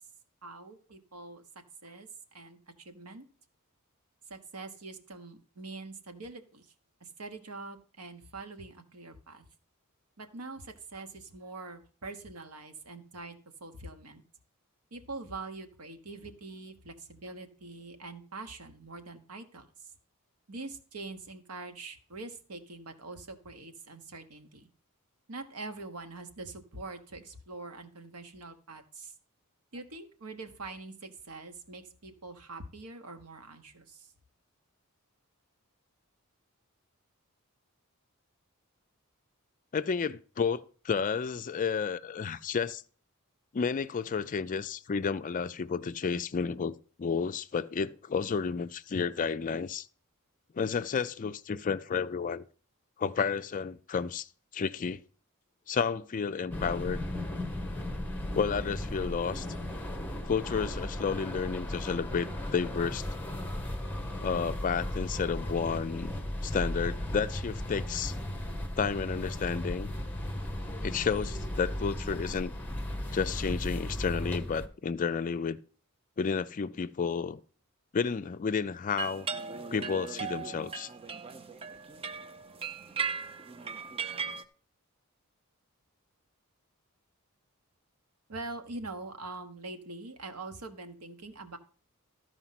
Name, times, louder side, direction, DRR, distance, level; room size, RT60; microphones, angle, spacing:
voice 1, 0.4-1.4 1.8-3.2 4.3-6.7 7.0-9.4 10.2-14.2 14.9-19.9 20.5-24.7 25.3-29.1 29.7-34.1 88.3-91.6, right 3 dB, 85° right, 1.2 m, -44 dB
voice 2, 39.7-42.8 43.5-49.9 50.5-52.4 53.0-54.3 54.5-55.0 55.7-57.0 58.3-59.5 60.2-63.1 64.2-66.1 66.4-68.1 68.8-69.9 70.8-72.5 73.1-75.6 76.2-77.4 77.9-79.3 79.7-80.9, left 6 dB, 35° left, 0.4 m, -31 dB
sound 1, 56.5-74.7, left 1 dB, 10° left, 1.0 m, -36 dB
sound 2, 79.0-84.4, right 5 dB, 25° right, 0.5 m, -37 dB
13.0 x 4.9 x 5.8 m
head